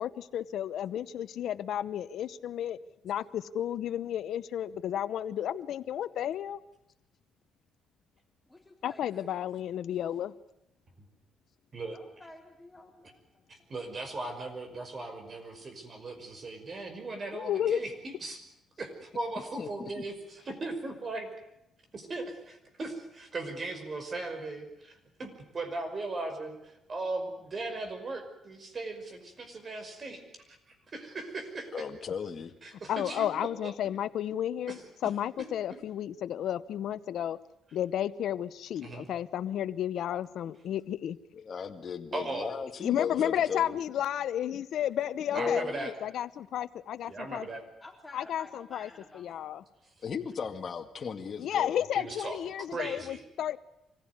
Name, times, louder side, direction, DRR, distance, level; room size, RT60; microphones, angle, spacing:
voice 1, 0.0-2.8 3.0-6.6 8.8-10.3 17.3-17.8 32.9-37.4 37.7-41.2 42.8-45.6 46.0-47.5 48.1-48.9 49.1-49.6 51.4-53.6, left 10 dB, 75° left, 14 dB, 0.8 m, -32 dB
voice 2, 8.5-9.4 11.9-13.2 13.6-13.7 47.8-49.6, left 2 dB, 10° left, 1 dB, 3.7 m, -51 dB
voice 3, 13.5-18.4 18.8-21.3 21.9-30.2 30.7-31.8 32.6-33.7 34.7-34.8 38.8-39.1 42.1-42.5 45.3-45.9 47.1-47.6 51.9-52.4 52.7-53.2, right 2 dB, 40° right, 6 dB, 5.5 m, -38 dB
voice 4, 19.6-20.0 31.7-32.5 41.3-43.7 45.3-46.0 50.0-51.8, left 6 dB, 45° left, 6 dB, 2.1 m, -36 dB
24.5 x 16.0 x 9.6 m, 0.86 s
cardioid pair, 90°, 0 cm